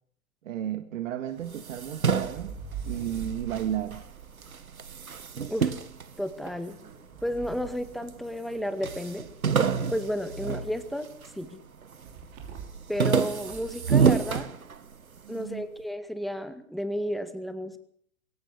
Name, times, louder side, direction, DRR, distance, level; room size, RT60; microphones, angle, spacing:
voice 1, 0.4-2.6 2.9-4.0 15.2-15.7, right 10 dB, 65° right, 9 dB, 1.9 m, -33 dB
sound 1, 1.4-5.5 6.4-8.8 12.1-12.9 13.3-13.8, right 6 dB, 45° right, 5.8 m, -43 dB
sound 2, 1.4-4.1 4.4-6.9 7.5-8.2 8.5-8.6 8.8-11.4 11.8-12.2 12.6-15.2, right 6 dB, 90° right, 1.6 m, -28 dB
voice 2, 6.2-6.8 7.2-9.3 9.9-11.1 11.4-11.6 12.9-14.5 15.3-17.8, equal, ahead, 9 dB, 2.0 m, -32 dB
22.0 x 18.0 x 6.7 m, 0.62 s
hypercardioid pair, 110°, 41 cm